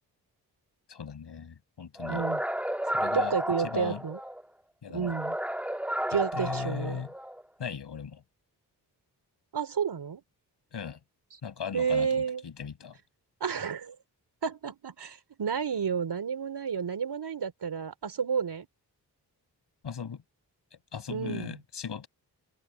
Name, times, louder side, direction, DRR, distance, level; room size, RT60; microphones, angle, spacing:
voice 1, 0.9-2.2 2.9-4.0 4.8-5.1 6.1-7.1 7.6-8.2 10.7-11.0 11.4-13.0 19.8-20.2 20.7-22.1, left 7 dB, 75° left, 7.6 m, -38 dB
sound 1, 2.0-4.4 5.0-7.4, equal, 5° right, 1.6 m, -32 dB
voice 2, 2.1-2.4 3.1-4.2 4.9-5.4 6.1-7.0 9.5-10.2 11.7-12.4 13.4-14.0 14.4-18.7 21.1-21.6, right 6 dB, 70° right, 3.7 m, -31 dB
open air
supercardioid pair, 40°, 42 cm